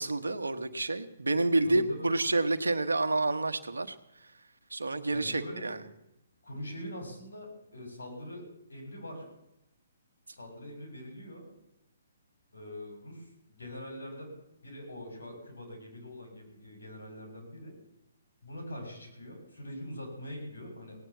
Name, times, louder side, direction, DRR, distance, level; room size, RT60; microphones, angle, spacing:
voice 1, 0.0-4.3 4.7-5.8, right 2 dB, 90° right, 10 dB, 1.2 m, -29 dB
voice 2, 1.6-2.1 5.1-5.7 6.4-9.3 10.3-11.4 12.5-14.3 14.6-17.7 18.4-21.0, left 1 dB, 80° left, 2 dB, 6.6 m, -43 dB
17.5 x 9.0 x 7.3 m, 0.86 s
hypercardioid pair, 135°, 0 cm